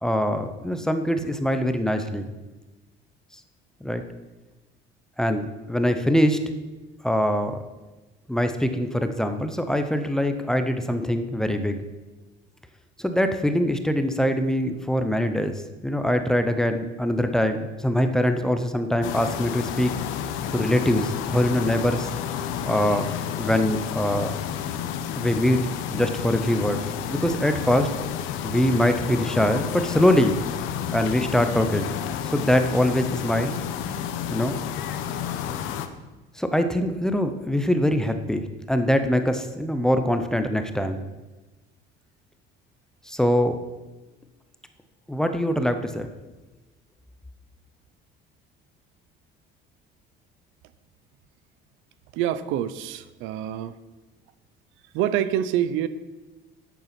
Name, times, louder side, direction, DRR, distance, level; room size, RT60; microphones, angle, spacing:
voice 1, 0.0-2.3 3.8-4.0 5.2-6.4 7.0-7.6 8.3-11.8 13.0-15.5 15.8-19.9 20.5-22.1 22.7-23.1 23.4-24.3 25.1-25.6 25.9-27.9 28.4-30.4 30.9-31.9 32.3-33.6 34.3-34.6 36.4-41.0 43.1-43.6 45.1-46.1, equal, 5° left, 7 dB, 0.7 m, -23 dB
sound 1, 19.0-35.9, left 9 dB, 80° left, 1.0 m, -31 dB
voice 2, 52.1-53.8 54.9-55.9, right 11 dB, 90° right, 14 dB, 0.7 m, -26 dB
11.0 x 8.4 x 5.9 m, 1.2 s
cardioid pair, 160°, 20 cm